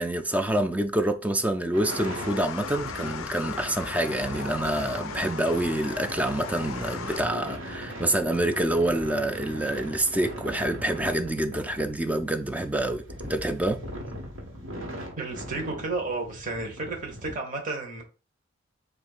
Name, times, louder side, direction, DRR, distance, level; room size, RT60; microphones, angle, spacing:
voice 1, 0.0-13.8, right 1 dB, 5° right, 0.3 m, -27 dB
sound 1, 1.7-17.3, equal, 85° right, 1.3 m, -39 dB
sound 2, 1.9-7.2, left 8 dB, 80° left, 0.4 m, -38 dB
voice 2, 15.2-18.0, right 3 dB, 40° right, 1.0 m, -32 dB
7.3 x 2.5 x 2.4 m
head